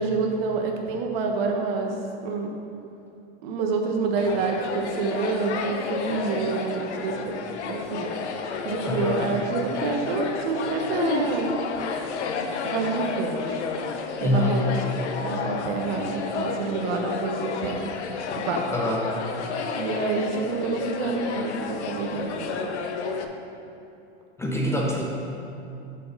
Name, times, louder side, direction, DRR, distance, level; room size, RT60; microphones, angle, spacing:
voice 1, 0.0-1.9 2.2-2.5 3.4-7.2 7.7-8.1 8.6-11.5 12.6-13.6 14.2-14.7 15.2-17.9 18.4-18.7 19.7-22.5, right 4 dB, 60° right, 2 dB, 1.1 m, -27 dB
sound 1, 4.2-23.2, left 5 dB, 85° left, 0.7 m, -31 dB
voice 2, 8.8-9.2 14.2-14.6 18.7-19.1 24.4-25.0, left 1 dB, 10° left, -2 dB, 0.5 m, -25 dB
6.5 x 4.7 x 5.3 m, 2.7 s
supercardioid pair, 130°, 33 cm